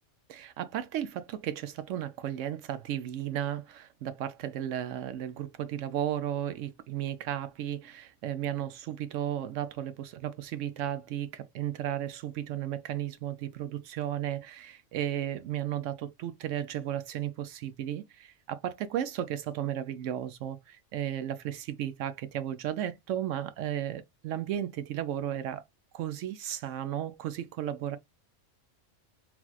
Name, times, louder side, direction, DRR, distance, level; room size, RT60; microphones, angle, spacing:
voice 1, 0.3-25.6 25.9-28.0, right 11 dB, 85° right, 1.0 m, -34 dB
4.0 x 2.9 x 2.3 m
omnidirectional pair, 1.3 m